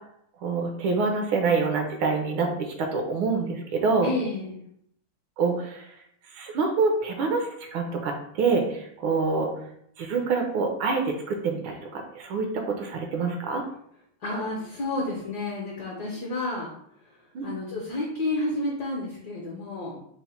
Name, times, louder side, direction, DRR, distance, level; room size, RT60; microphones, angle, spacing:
voice 1, 0.4-4.1 5.4-5.9 6.3-9.5 10.0-13.6 17.3-17.5, right 4 dB, 75° right, 3 dB, 1.4 m, -26 dB
voice 2, 4.0-4.6 14.2-16.7 17.4-20.0, left 2 dB, 65° left, -2 dB, 1.1 m, -30 dB
4.1 x 2.1 x 4.2 m, 0.70 s
omnidirectional pair, 2.4 m